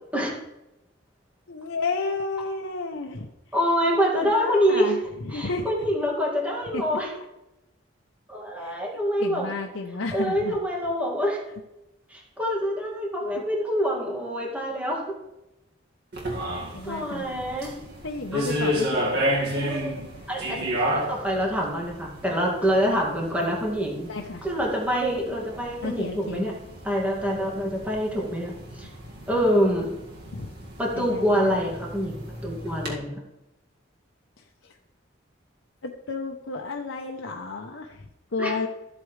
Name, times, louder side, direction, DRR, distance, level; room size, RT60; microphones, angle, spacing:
voice 1, 1.5-3.3 4.2-5.9 6.7-6.8 8.6-8.8 9.2-10.6 16.3-17.3 18.0-19.7 20.2-20.3 24.1-24.4 25.8-26.5 28.8-28.9 30.3-30.5 30.9-31.6 34.4-34.8 35.8-38.7, left 3 dB, 80° left, 1 dB, 0.8 m, -32 dB
voice 2, 3.5-4.9 5.3-7.1 8.3-9.5 10.1-11.4 12.1-15.1 16.8-17.8 18.3-18.5 19.7-19.9 20.3-20.6 20.9-24.1 24.4-26.5 26.8-28.9 29.3-29.9 30.8-33.2 38.4-38.5, equal, 10° right, -2 dB, 2.1 m, -26 dB
sound 1, 16.1-32.9, equal, 55° right, 2.0 m, -32 dB
13.5 x 8.2 x 3.3 m, 0.93 s
head